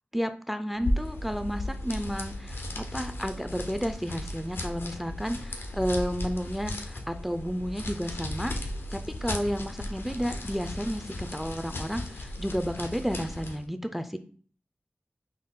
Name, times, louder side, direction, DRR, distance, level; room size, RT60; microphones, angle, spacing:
voice 1, 0.1-8.6 8.9-14.2, equal, 5° right, 9 dB, 0.3 m, -32 dB
sound 1, 0.8-13.6, left 1 dB, 85° left, 0.5 m, -35 dB
3.9 x 2.1 x 3.6 m, 0.44 s
cardioid pair, 45°, 4 cm